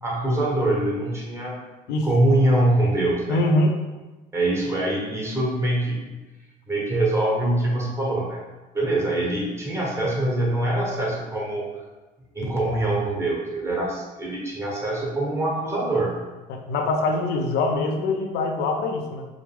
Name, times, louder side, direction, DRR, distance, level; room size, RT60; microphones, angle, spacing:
voice 1, 0.0-1.6 2.0-3.4 4.3-6.0 6.7-8.4 8.7-11.7 12.3-16.2, right 1 dB, 15° right, -4 dB, 1.2 m, -24 dB
voice 2, 3.3-3.8 16.5-19.3, left 2 dB, 85° left, 3 dB, 0.5 m, -23 dB
4.8 x 2.1 x 3.4 m, 1.1 s
cardioid pair, 110°, 17 cm